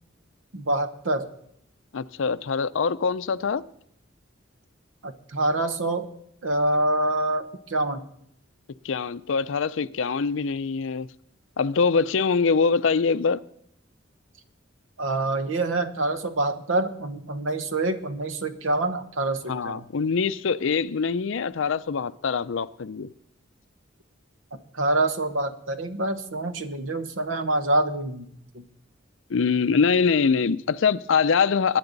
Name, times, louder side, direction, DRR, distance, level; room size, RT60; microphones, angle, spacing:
voice 1, 0.5-1.3 5.0-6.1 6.4-8.1 15.0-19.8 24.7-28.3 28.5-28.6, right 2 dB, 75° right, 1.1 m, -26 dB
voice 2, 1.9-3.6 8.8-11.1 11.6-13.4 19.5-23.1 29.3-31.8, left 5 dB, 70° left, 0.5 m, -23 dB
21.5 x 9.6 x 4.0 m
head